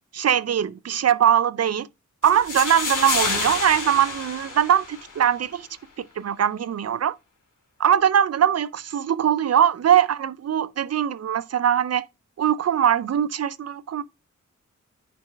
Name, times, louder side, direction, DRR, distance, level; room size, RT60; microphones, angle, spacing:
voice 1, 0.1-1.9 2.2-5.7 6.2-7.1 7.8-12.1 12.4-14.0, right 9 dB, 55° right, 0.4 m, -21 dB
sound 1, 2.2-5.3, left 3 dB, 85° left, 2.4 m, -28 dB
9.5 x 4.4 x 3.1 m
wide cardioid pair, 85°, 31 cm